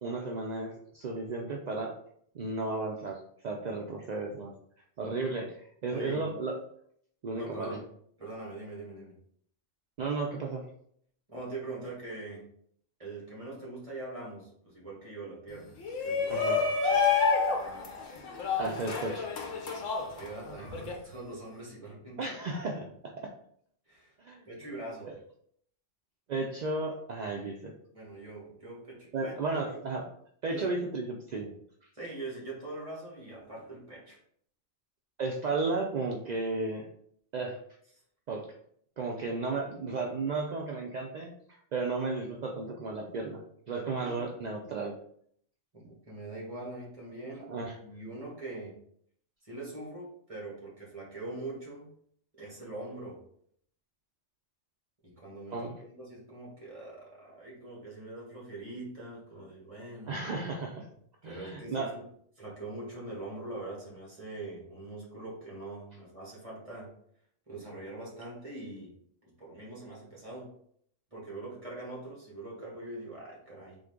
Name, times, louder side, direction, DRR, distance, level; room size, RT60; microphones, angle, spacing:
voice 1, 0.0-1.9 2.3-4.5 5.0-6.6 7.2-7.8 10.0-10.7 16.3-16.7 18.6-19.3 22.2-23.1 24.2-24.4 26.3-27.7 29.1-30.0 30.4-31.5 35.2-36.9 37.3-37.6 38.3-38.5 39.0-41.3 41.7-43.4 43.7-45.0 47.5-47.8 55.5-55.7 60.1-60.9 61.2-61.9, right 3 dB, 70° right, 0 dB, 0.4 m, -34 dB
voice 2, 5.9-6.3 7.3-7.8 8.2-9.1 11.3-12.4 13.0-16.5 16.9-17.1 17.5-17.9 20.1-22.6 23.9-24.1 24.4-25.1 27.9-29.6 30.5-30.8 31.9-34.2 44.0-44.3 45.7-47.5 47.8-48.7 49.4-51.9 52.4-53.2 55.0-60.2 61.2-62.0 62.4-66.9 67.5-68.9 69.4-70.5 71.1-73.8, right 2 dB, 25° right, -5 dB, 1.5 m, -43 dB
Shout, 15.8-20.9, left 5 dB, 75° left, 1.1 m, -29 dB
3.8 x 3.1 x 3.6 m, 0.66 s
omnidirectional pair, 1.3 m